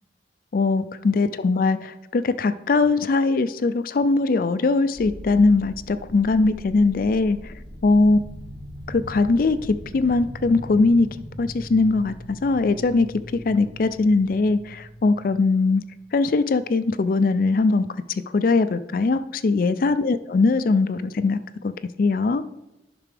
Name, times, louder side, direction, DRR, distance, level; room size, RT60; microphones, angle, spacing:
voice 1, 0.5-7.4 7.8-8.2 8.9-9.6 9.9-11.1 11.4-12.1 12.4-13.1 13.3-15.8 16.1-17.9 18.3-21.4 21.6-21.7 22.0-22.4, left 3 dB, 50° left, 13 dB, 0.4 m, -20 dB
sound 1, 4.9-16.4, equal, 55° right, 2.4 m, -40 dB
10.5 x 5.9 x 3.3 m, 0.95 s
head